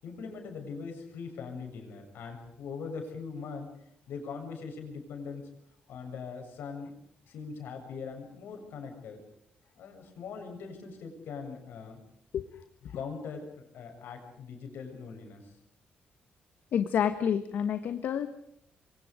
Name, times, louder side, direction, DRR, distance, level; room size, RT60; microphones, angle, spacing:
voice 1, 0.0-3.7 4.1-5.4 5.9-6.9 7.3-9.2 9.7-12.0 12.9-15.5, left 5 dB, 85° left, 4 dB, 7.4 m, -41 dB
voice 2, 16.7-18.3, left 8 dB, 70° left, 9 dB, 1.6 m, -28 dB
27.0 x 24.5 x 5.1 m, 0.72 s
cardioid pair, 150°, 3 cm